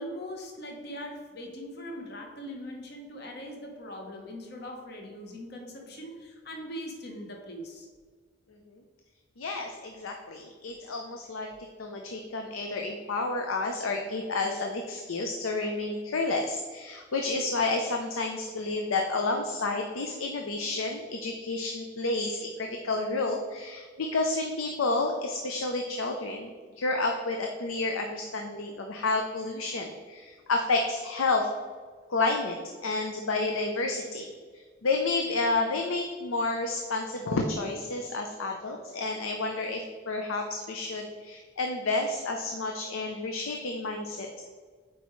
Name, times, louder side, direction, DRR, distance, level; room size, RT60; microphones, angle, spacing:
voice 1, 0.0-7.9, equal, 50° left, 2 dB, 0.9 m, -41 dB
voice 2, 8.5-8.8 9.4-11.5 11.8-31.5 32.1-32.6 32.8-44.5, left 3 dB, 85° left, 3 dB, 0.6 m, -30 dB
8.2 x 4.6 x 3.1 m, 1.5 s
head